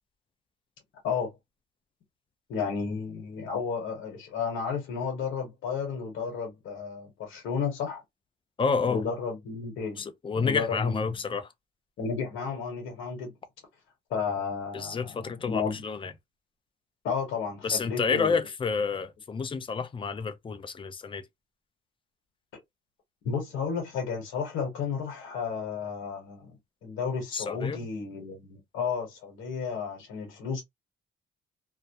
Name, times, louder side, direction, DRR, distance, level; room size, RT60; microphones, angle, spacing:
voice 1, 2.5-8.0 8.9-10.0 10.4-11.0 12.0-13.3 14.1-15.8 17.0-18.4 23.2-26.6 26.8-30.6, left 6 dB, 85° left, 1.0 m, -32 dB
voice 2, 8.6-9.0 10.0-11.5 14.7-16.1 17.6-21.2 27.3-27.8, left 5 dB, 25° left, 0.5 m, -29 dB
2.2 x 2.0 x 2.7 m
cardioid pair, 90°, 20 cm